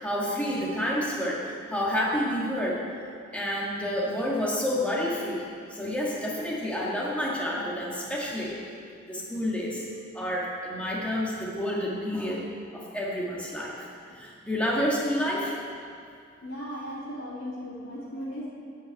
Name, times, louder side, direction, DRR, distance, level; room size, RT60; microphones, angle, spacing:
voice 1, 0.0-2.8 3.3-5.5 5.7-8.6 9.1-9.8 10.1-12.4 12.7-13.8 14.2-15.5, equal, 5° left, -5 dB, 1.9 m, -29 dB
voice 2, 16.4-18.5, equal, 80° left, -10 dB, 2.6 m, -37 dB
12.0 x 5.8 x 8.3 m, 2.4 s
head